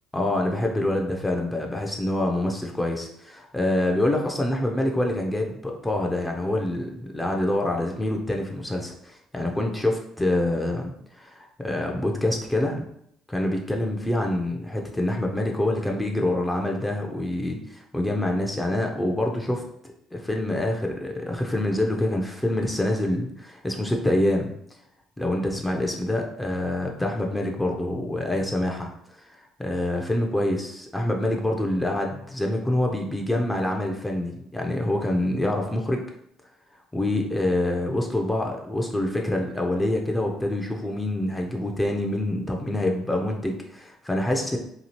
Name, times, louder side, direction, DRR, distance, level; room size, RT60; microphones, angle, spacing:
voice 1, 0.1-12.8 13.3-24.5 25.2-28.9 29.2-36.0 36.9-44.6, left 1 dB, 10° left, 1 dB, 0.4 m, -26 dB
2.8 x 2.3 x 2.9 m, 0.74 s
supercardioid pair, 85°, 0 cm